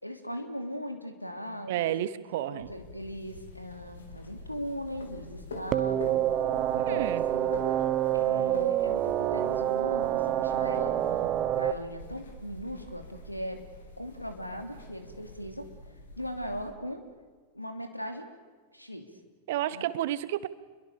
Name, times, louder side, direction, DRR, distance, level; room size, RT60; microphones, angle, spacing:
voice 1, 0.0-6.2 6.7-7.5 8.1-13.6 14.0-15.7 16.2-17.0 17.5-18.3 18.7-19.1 19.7-19.9, equal, 90° left, 6 dB, 2.9 m, -39 dB
voice 2, 1.7-2.7 6.9-7.2 19.5-20.5, right 13 dB, 55° right, 16 dB, 1.1 m, -31 dB
sound 1, 2.6-16.7, left 2 dB, 70° left, 3.9 m, -46 dB
sound 2, 5.7-11.7, right 12 dB, 35° right, 1.2 m, -27 dB
29.5 x 22.5 x 6.9 m, 1.5 s
figure-of-eight pair, 90°, 0 cm